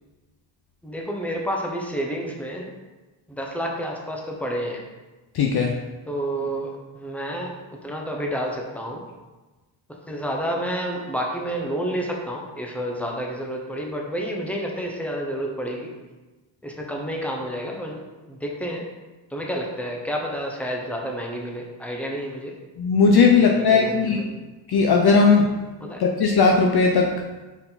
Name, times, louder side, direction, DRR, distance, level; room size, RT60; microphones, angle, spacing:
voice 1, 0.8-2.7 3.3-4.8 6.1-9.0 10.1-15.9 16.6-18.8 19.3-22.5 23.5-24.3 25.8-26.0, equal, 5° left, 0 dB, 0.8 m, -30 dB
voice 2, 5.3-5.8 22.8-24.2 24.7-25.5 26.0-27.1, left 4 dB, 50° left, 1 dB, 0.6 m, -17 dB
5.8 x 4.6 x 4.1 m, 1.2 s
wide cardioid pair, 145°, 48 cm